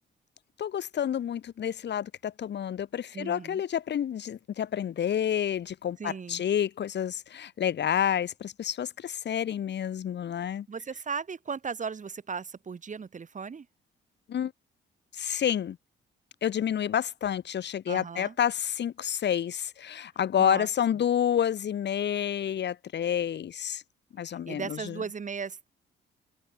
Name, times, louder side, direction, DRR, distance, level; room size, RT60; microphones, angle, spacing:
voice 1, 0.6-10.7 14.3-14.5 15.1-15.8 16.4-23.8 24.1-25.0, left 9 dB, 60° left, 3.7 m, -29 dB
voice 2, 3.1-3.6 6.0-6.4 10.7-13.7 17.9-18.3 20.4-20.7 24.3-25.7, right 5 dB, 40° right, 4.8 m, -36 dB
open air
cardioid pair, 90°, 20 cm